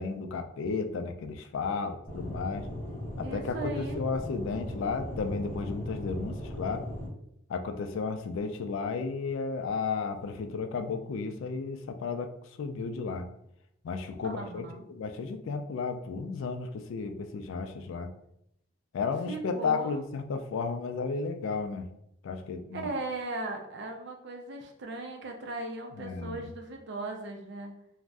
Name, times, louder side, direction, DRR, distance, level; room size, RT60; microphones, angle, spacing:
voice 1, 0.0-2.7 3.2-6.8 7.5-12.3 12.6-13.3 13.8-18.1 18.9-21.9 22.2-22.9 26.0-26.5, left 4 dB, 65° left, 8 dB, 0.3 m, -33 dB
Aircraft / Engine, 2.1-7.1, equal, 15° left, 0.8 m, -38 dB
voice 2, 3.2-4.0 14.2-14.8 19.3-20.0 22.7-27.7, right 2 dB, 55° right, 2 dB, 0.4 m, -37 dB
2.5 x 2.0 x 3.4 m, 0.76 s
head